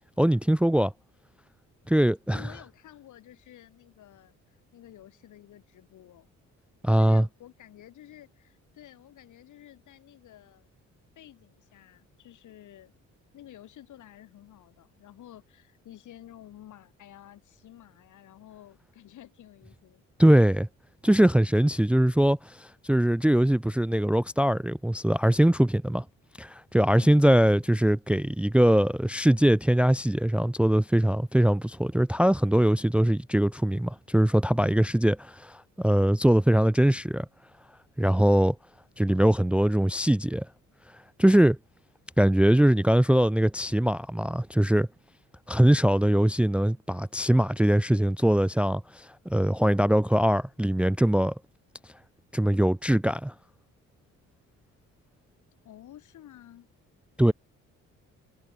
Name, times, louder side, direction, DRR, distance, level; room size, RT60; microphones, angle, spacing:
voice 1, 0.2-0.9 1.9-2.4 6.8-7.2 20.2-20.7 21.0-26.0 26.4-37.3 38.0-38.6 39.0-40.5 41.2-41.6 42.2-44.9 45.5-51.3 52.3-53.3 57.2-57.3, right 1 dB, 5° right, 0.5 m, -22 dB
voice 2, 2.3-6.3 6.9-10.7 11.1-12.9 13.3-20.0 27.0-27.7 55.6-56.7, left 12 dB, 75° left, 7.9 m, -51 dB
cardioid pair, 90°, 30 cm